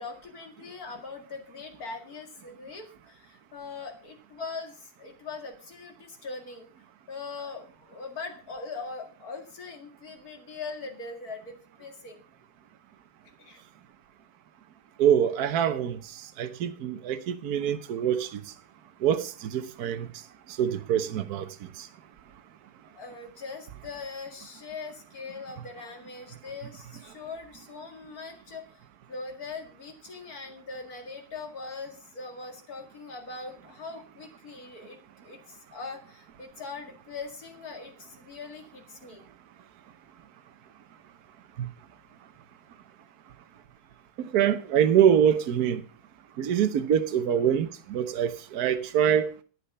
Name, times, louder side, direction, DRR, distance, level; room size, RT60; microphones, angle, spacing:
voice 1, 0.0-6.7 7.1-12.2 13.4-13.6 22.9-28.8 29.1-39.3, left 4 dB, 45° left, 2.4 m, -41 dB
voice 2, 15.0-18.4 19.0-20.1 20.5-21.9 41.6-41.7 44.2-45.8 46.4-49.3, right 9 dB, 55° right, 1.2 m, -25 dB
11.5 x 8.8 x 5.4 m
omnidirectional pair, 2.4 m